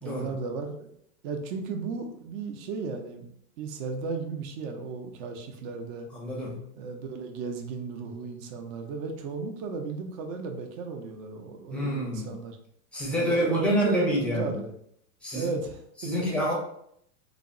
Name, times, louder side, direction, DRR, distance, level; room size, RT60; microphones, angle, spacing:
voice 1, 0.0-0.9 1.2-3.3 3.6-6.1 6.8-12.6 13.1-14.7 15.3-16.4, right 4 dB, 45° right, 4 dB, 0.6 m, -34 dB
voice 2, 6.1-6.6 11.7-12.3 12.9-14.5 15.2-15.5 16.0-16.5, equal, ahead, -3 dB, 0.5 m, -27 dB
3.3 x 2.0 x 2.5 m, 0.71 s
hypercardioid pair, 115°, 48 cm